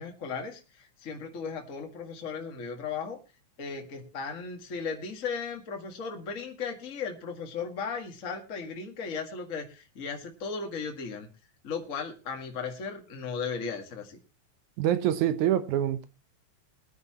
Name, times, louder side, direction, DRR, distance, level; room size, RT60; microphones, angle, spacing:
voice 1, 0.0-3.2 3.6-11.3 11.6-14.2, left 5 dB, 30° left, 1.9 m, -36 dB
voice 2, 14.8-16.1, right 11 dB, 90° right, 2.5 m, -25 dB
22.0 x 9.4 x 3.0 m
omnidirectional pair, 3.3 m